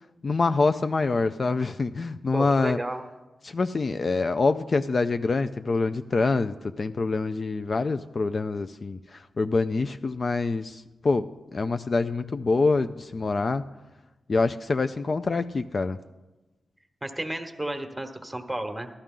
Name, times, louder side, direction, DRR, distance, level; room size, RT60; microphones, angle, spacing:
voice 1, 0.2-2.8 3.4-13.6 14.3-16.0, left 3 dB, 45° left, 10 dB, 0.3 m, -25 dB
voice 2, 2.3-3.0 17.0-18.9, right 1 dB, 10° right, 5 dB, 1.1 m, -32 dB
13.5 x 12.5 x 3.8 m, 1.1 s
wide cardioid pair, 95°, 0 cm